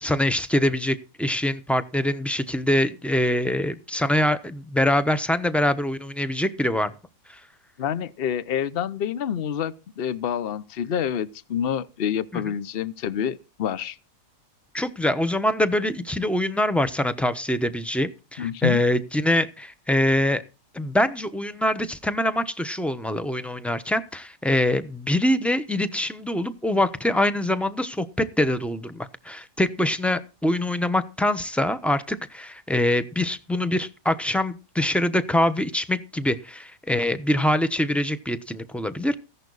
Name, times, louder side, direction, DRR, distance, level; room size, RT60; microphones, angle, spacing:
voice 1, 0.0-6.9 7.3-7.4 12.3-12.4 14.7-20.4 20.7-39.2, left 1 dB, ahead, 0.6 m, -24 dB
voice 2, 7.8-14.0 18.4-18.8, left 8 dB, 45° left, 0.8 m, -27 dB
15.5 x 11.0 x 4.0 m
omnidirectional pair, 1.7 m